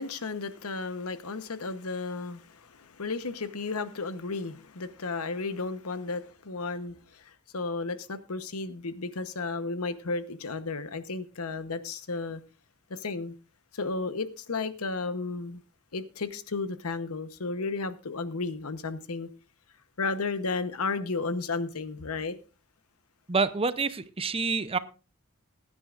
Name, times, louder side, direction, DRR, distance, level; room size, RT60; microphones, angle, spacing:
voice 1, 0.0-12.4 12.9-13.3 13.7-15.6 15.9-19.3 20.0-22.4, left 3 dB, 85° left, 1.0 m, -33 dB
voice 2, 23.3-24.8, right 4 dB, 25° right, 0.6 m, -27 dB
21.0 x 10.0 x 2.5 m
head